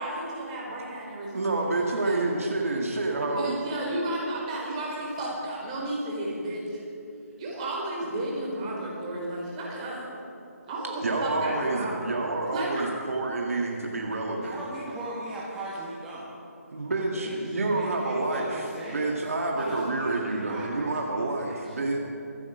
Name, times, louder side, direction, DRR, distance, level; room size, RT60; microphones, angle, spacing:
voice 1, 0.0-1.5 1.9-2.2 3.3-6.8 7.4-10.1 10.7-12.0 12.5-12.7, right 1 dB, 25° right, -3 dB, 4.1 m, -33 dB
voice 2, 1.3-3.6 11.0-14.6 16.7-18.5 18.9-22.0, right 2 dB, 60° right, 0 dB, 2.1 m, -28 dB
voice 3, 10.7-11.6 14.4-16.4 17.1-19.1 19.5-21.7, right 1 dB, 5° right, -8 dB, 1.7 m, -39 dB
25.0 x 8.6 x 5.1 m, 2.7 s
figure-of-eight pair, 150°, 9 cm